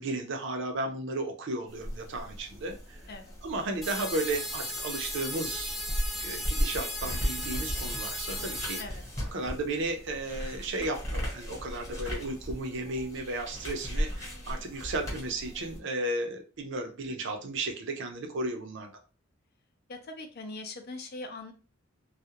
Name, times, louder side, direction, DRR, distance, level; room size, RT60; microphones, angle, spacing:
voice 1, 0.0-3.0 3.4-5.8 6.2-8.8 9.3-18.9, right 2 dB, 65° right, 4 dB, 0.6 m, -34 dB
sound 1, 1.7-15.8, equal, 15° left, 1.0 m, -37 dB
sound 2, 3.8-8.8, equal, ahead, 0.5 m, -36 dB
voice 2, 19.9-21.5, left 2 dB, 55° left, 6 dB, 0.5 m, -41 dB
2.3 x 2.1 x 2.8 m, 0.34 s
head